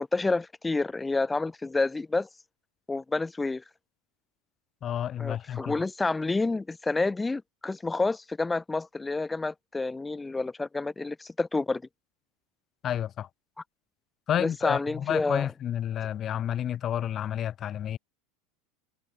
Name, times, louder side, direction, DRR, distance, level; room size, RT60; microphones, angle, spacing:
voice 1, 0.0-2.3 2.9-3.6 5.2-11.8 14.4-15.5, left 3 dB, 10° left, 3.1 m, -29 dB
voice 2, 4.8-5.7 12.8-13.3 14.3-18.0, left 10 dB, 30° left, 1.5 m, -30 dB
supercardioid pair, 145°, 0 cm